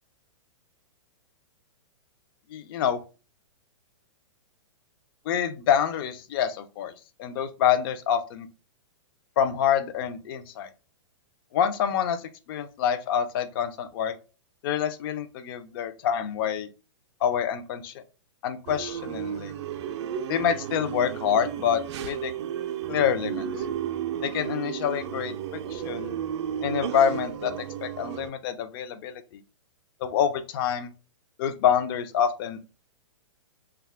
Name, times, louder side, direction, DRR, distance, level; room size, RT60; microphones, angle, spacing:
voice 1, 2.5-3.0 5.3-6.9 7.2-8.5 9.4-10.7 11.5-14.2 14.6-16.7 17.2-18.0 18.4-19.5 20.3-22.3 22.9-23.4 24.2-25.3 25.7-26.1 26.6-27.5 27.8-29.2 30.0-30.9 31.4-32.6, left 8 dB, 45° left, 11 dB, 0.4 m, -26 dB
sound 1, 18.7-28.3, right 9 dB, 60° right, 0.4 m, -33 dB
2.2 x 2.1 x 3.3 m, 0.33 s
hypercardioid pair, 130°, 16 cm